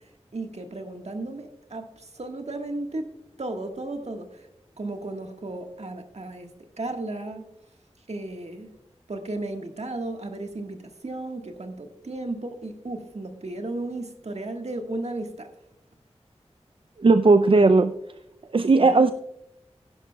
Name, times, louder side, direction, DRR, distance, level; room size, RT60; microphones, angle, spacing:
voice 1, 0.3-3.1 3.4-4.5 4.8-6.5 6.8-7.5 8.1-8.7 9.1-15.5 18.7-18.9, right 2 dB, 70° right, 4 dB, 1.5 m, -34 dB
voice 2, 17.0-17.9 18.5-19.1, right 3 dB, 50° right, 10 dB, 0.4 m, -17 dB
16.0 x 11.0 x 2.3 m, 0.83 s
wide cardioid pair, 40°, 12 cm